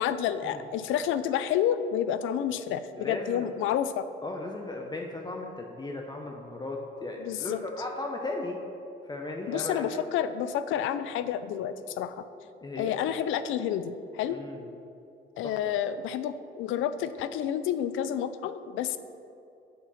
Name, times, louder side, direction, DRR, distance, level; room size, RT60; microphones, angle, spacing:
voice 1, 0.0-4.0 7.2-7.6 9.5-12.2 12.8-14.4 15.4-19.0, left 9 dB, 85° left, 12 dB, 0.4 m, -29 dB
voice 2, 3.0-3.5 4.2-8.6 9.0-10.0 12.6-12.9 14.3-14.7 15.4-15.6, left 2 dB, 20° left, 1 dB, 0.7 m, -36 dB
8.4 x 4.2 x 5.6 m, 2.7 s
cardioid pair, 90°, 20 cm